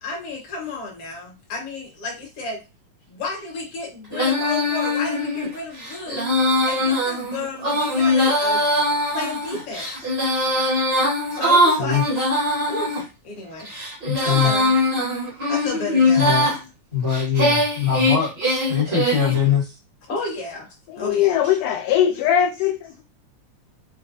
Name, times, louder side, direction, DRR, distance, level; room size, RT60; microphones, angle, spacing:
voice 1, 0.0-2.6 3.1-8.6 9.0-10.1 11.3-12.1 12.7-13.7 14.2-14.7 15.5-16.7 20.1-21.9, left 3 dB, 60° left, 1.7 m, -32 dB
Female singing, 4.1-13.0 13.6-16.6 17.1-19.4, left 1 dB, 50° right, 0.6 m, -21 dB
voice 2, 14.0-14.5 16.2-16.4 16.9-19.7, left 8 dB, 35° left, 0.8 m, -22 dB
voice 3, 20.9-23.0, left 10 dB, 80° left, 2.1 m, -20 dB
5.2 x 2.2 x 2.6 m
omnidirectional pair, 3.6 m